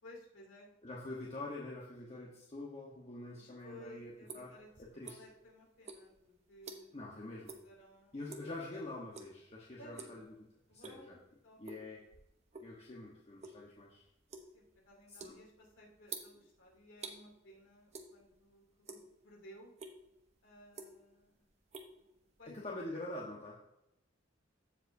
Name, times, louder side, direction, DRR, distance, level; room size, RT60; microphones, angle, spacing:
voice 1, 0.0-0.7 1.2-1.3 3.3-4.7 5.0-8.2 9.8-10.3 10.7-11.6 14.5-19.7 20.4-21.5 22.0-22.1 22.4-22.6, equal, 85° left, -2 dB, 2.8 m, -57 dB
voice 2, 0.8-4.5 4.8-5.2 6.9-7.5 8.1-10.2 10.7-11.2 11.6-12.0 12.6-14.1 15.1-15.3 22.6-23.5, left 2 dB, 35° left, -4 dB, 1.2 m, -45 dB
sound 1, 3.6-5.5 5.8-7.1 7.4-7.7 8.0-8.6 9.1-9.5 9.8-10.2 10.6-11.2 11.6-12.8 13.1-17.2 17.9-18.5 18.7-19.4 19.8-20.0 20.5-21.2 21.5-22.6, right 4 dB, 35° right, 0.9 m, -49 dB
14.5 x 5.0 x 2.7 m, 0.86 s
head